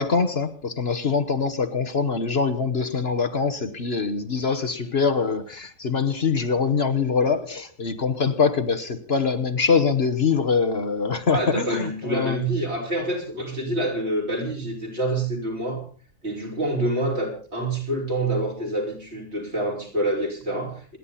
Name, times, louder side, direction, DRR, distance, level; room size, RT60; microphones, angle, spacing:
voice 1, 0.0-12.4, left 5 dB, 50° left, 8 dB, 1.5 m, -23 dB
voice 2, 11.3-15.8 16.2-21.0, right 1 dB, 55° right, -2 dB, 5.6 m, -27 dB
28.0 x 11.0 x 4.2 m, 0.41 s
omnidirectional pair, 1.3 m